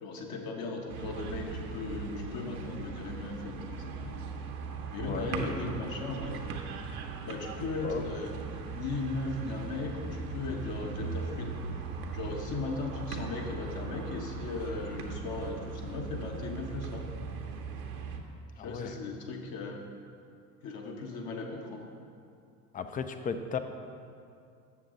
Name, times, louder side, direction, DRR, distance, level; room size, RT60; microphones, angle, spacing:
voice 1, 0.0-4.1 4.9-6.6 7.2-8.3 8.7-11.6 12.1-17.1 18.6-19.8 20.6-21.9, left 3 dB, 50° left, 1 dB, 1.2 m, -37 dB
sound 1, 0.9-18.2, right 4 dB, 75° right, 0.9 m, -39 dB
voice 2, 18.6-18.9 22.7-23.6, left 6 dB, 20° left, 9 dB, 0.3 m, -35 dB
7.1 x 6.9 x 3.8 m, 2.4 s
hypercardioid pair, 75°, 46 cm